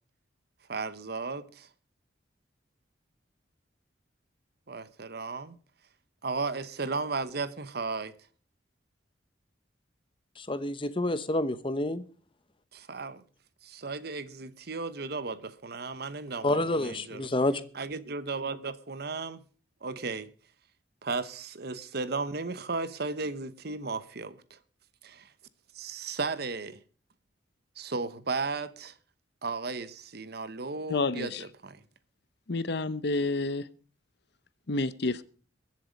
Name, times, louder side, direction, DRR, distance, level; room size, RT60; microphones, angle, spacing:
voice 1, 0.7-1.7 4.7-5.6 6.2-8.1 12.7-13.2 13.6-17.3 17.7-19.4 19.8-20.3 21.0-24.6 25.0-25.3 25.7-26.8 27.8-28.9 29.4-31.8, right 4 dB, 55° right, 0.9 m, -35 dB
voice 2, 10.4-12.0 16.4-17.6, left 1 dB, 25° left, 0.9 m, -28 dB
voice 3, 30.9-31.4 32.5-33.7 34.7-35.2, left 2 dB, 60° left, 0.8 m, -29 dB
22.5 x 7.5 x 5.2 m
head